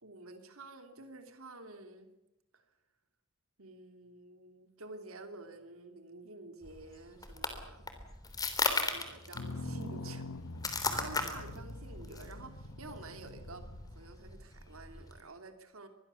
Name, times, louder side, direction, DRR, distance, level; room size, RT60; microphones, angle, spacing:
voice 1, 0.0-2.1 2.5-2.6 3.6-7.8 8.1-8.2 8.9-10.2 10.8-13.6 13.9-15.9, right 3 dB, 75° right, 7 dB, 2.9 m, -50 dB
sound 1, 6.6-15.2, left 3 dB, 15° left, 3.1 m, -37 dB
sound 2, 9.3-14.2, left 2 dB, 80° left, 1.5 m, -44 dB
25.5 x 21.5 x 7.1 m, 0.93 s
head